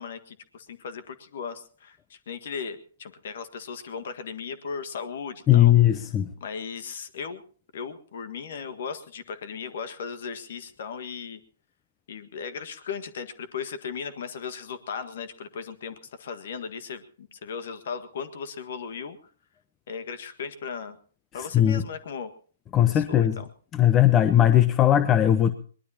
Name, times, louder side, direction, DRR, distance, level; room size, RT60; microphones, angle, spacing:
voice 1, 0.0-5.7 6.4-7.4 7.7-11.4 12.1-19.2 19.9-21.0 21.3-22.3 22.9-23.5, left 6 dB, 60° left, 11 dB, 1.6 m, -37 dB
voice 2, 5.5-6.3 21.3-21.8 22.7-23.4 23.7-25.5, left 11 dB, 25° left, 13 dB, 0.8 m, -19 dB
22.5 x 20.0 x 2.9 m, 0.43 s
hypercardioid pair, 130°, 0 cm